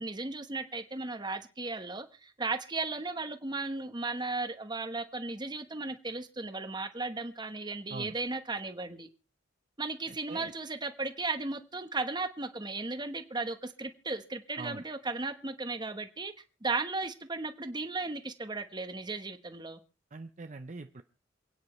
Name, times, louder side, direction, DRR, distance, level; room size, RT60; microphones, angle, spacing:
voice 1, 0.0-9.1 9.8-16.3 16.6-19.8, right 3 dB, 25° right, 1.1 m, -35 dB
voice 2, 10.1-10.5 14.6-14.8 20.1-21.0, right 3 dB, 40° right, 0.6 m, -43 dB
28.0 x 9.5 x 3.2 m
head